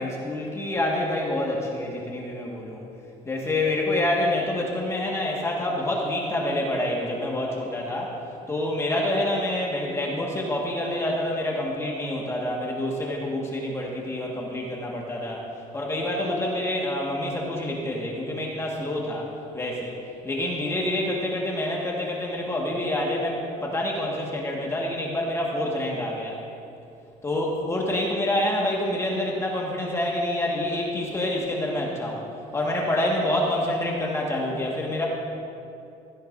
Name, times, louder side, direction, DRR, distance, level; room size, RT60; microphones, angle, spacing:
voice 1, 0.0-2.8 3.2-8.1 8.5-15.4 15.7-19.3 19.5-20.0 20.2-26.4 27.2-32.2 32.5-35.1, left 1 dB, 20° left, -2 dB, 1.6 m, -27 dB
16.0 x 14.0 x 2.6 m, 2.7 s
cardioid pair, 130°, 15 cm